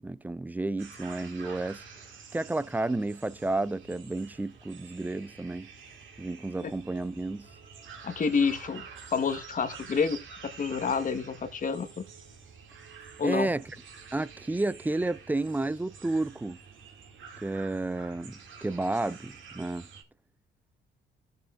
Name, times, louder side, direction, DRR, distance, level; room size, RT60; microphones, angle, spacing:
voice 1, 0.0-1.8 2.3-5.7 6.2-7.5 13.2-13.7 14.1-16.6 17.4-19.9, right 2 dB, 10° right, 0.4 m, -31 dB
sound 1, 0.8-20.0, right 5 dB, 75° right, 2.3 m, -49 dB
voice 2, 8.0-8.8 9.1-12.0 13.2-13.5, left 5 dB, 40° left, 1.2 m, -29 dB
14.5 x 6.8 x 2.4 m
cardioid pair, 90°, 20 cm